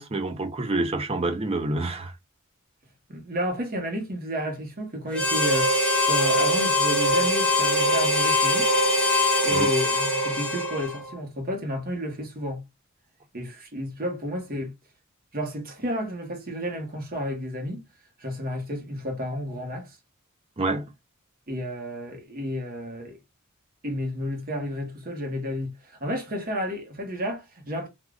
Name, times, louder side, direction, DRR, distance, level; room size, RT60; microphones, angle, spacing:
voice 1, 0.0-2.1 9.5-9.7 20.6-20.9, right 2 dB, 30° right, 0.6 m, -27 dB
voice 2, 3.1-8.7 9.4-12.6 13.3-14.7 15.3-17.9 18.2-20.0 21.5-23.2 23.8-27.9, equal, 45° right, 1.1 m, -31 dB
Harmonica, 5.1-11.1, left 1 dB, 5° left, 0.7 m, -22 dB
3.5 x 2.4 x 2.3 m
head